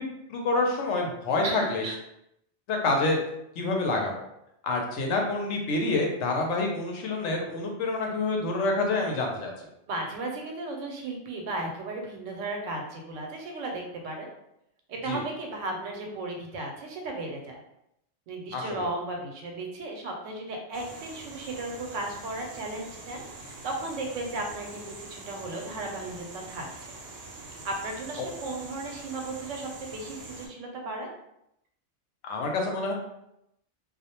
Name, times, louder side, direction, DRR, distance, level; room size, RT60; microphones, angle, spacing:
voice 1, 0.3-1.8 2.7-3.2 3.6-4.2 4.6-9.5 15.1-15.2 18.5-18.9 28.2-28.3 32.2-32.9, left 2 dB, 75° left, 1 dB, 0.9 m, -27 dB
voice 2, 1.4-2.0 9.9-14.3 14.9-17.6 18.3-26.9 27.6-31.1, right 2 dB, 90° right, 1 dB, 0.9 m, -35 dB
sound 1, 20.7-30.5, right 2 dB, 60° right, 0.7 m, -44 dB
2.3 x 2.0 x 2.8 m, 0.80 s
omnidirectional pair, 1.3 m